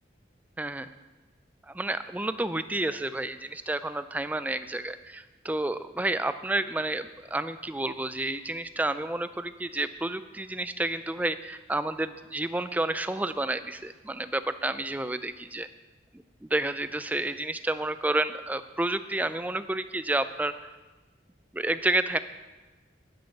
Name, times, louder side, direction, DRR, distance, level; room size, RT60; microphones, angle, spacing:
voice 1, 0.6-0.9 1.7-15.7 16.4-20.5 21.5-22.2, right 2 dB, 10° right, 11 dB, 0.3 m, -30 dB
10.5 x 8.6 x 5.8 m, 1.2 s
head